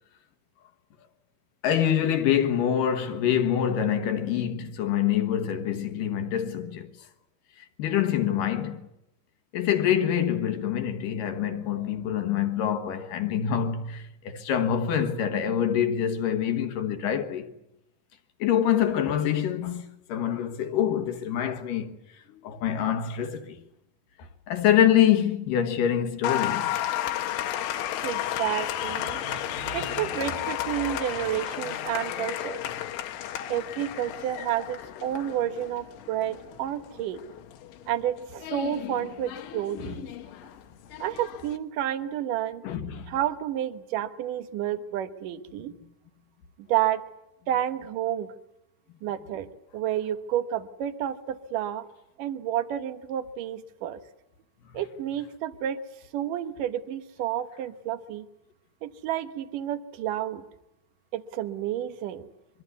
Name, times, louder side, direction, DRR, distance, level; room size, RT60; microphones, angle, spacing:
voice 1, 1.6-7.1 7.6-8.9 9.5-17.5 18.4-21.9 22.3-23.6 24.2-26.8 39.8-40.0 42.6-43.2, left 9 dB, 60° left, 2.4 m, -26 dB
Applause, 26.2-41.6, left 12 dB, 80° left, 3.8 m, -33 dB
voice 2, 28.0-32.6 33.5-37.2 37.9-40.1 41.0-42.6 43.1-45.7 46.6-47.0 47.5-48.3 49.0-49.5 49.7-51.8 52.2-54.0 54.7-55.8 56.1-58.3 58.8-60.4 61.1-62.3, right 11 dB, 75° right, 2.0 m, -30 dB
24.5 x 23.5 x 8.2 m
omnidirectional pair, 5.4 m